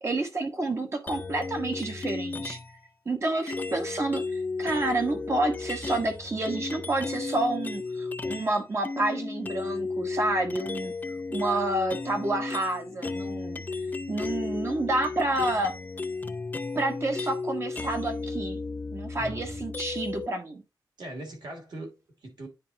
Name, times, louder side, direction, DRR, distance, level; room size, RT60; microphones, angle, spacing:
voice 1, 0.0-2.6 3.0-4.3 4.6-10.9 11.3-13.6 14.1-15.8 16.7-18.6 18.9-20.6, right 2 dB, 35° right, 1.3 m, -29 dB
sound 1, 1.1-2.8 3.5-8.5 8.8-20.3, left 3 dB, 20° left, 0.4 m, -34 dB
voice 2, 19.2-19.7 21.0-22.5, right 1 dB, 65° right, 2.7 m, -41 dB
9.5 x 4.3 x 2.8 m
wide cardioid pair, 170°, 8 cm